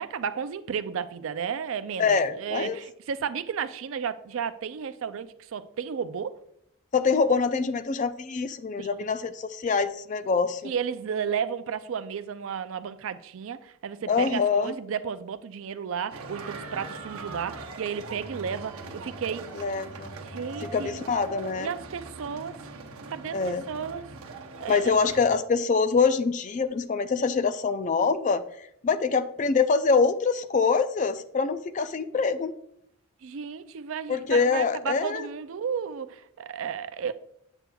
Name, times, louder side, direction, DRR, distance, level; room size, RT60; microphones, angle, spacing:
voice 1, 0.0-6.4 8.8-8.9 10.6-19.5 20.2-21.0 21.6-22.6 23.1-24.1 24.6-25.0 33.2-37.1, right 7 dB, 65° right, 0.4 m, -33 dB
voice 2, 2.0-2.8 6.9-10.7 14.1-14.7 19.6-20.2 20.6-21.7 23.3-23.6 24.7-28.4 28.8-32.5 34.1-35.3, left 5 dB, 35° left, 0.3 m, -25 dB
sound 1, 16.1-25.4, right 3 dB, 80° right, 0.8 m, -41 dB
7.8 x 6.0 x 2.3 m
head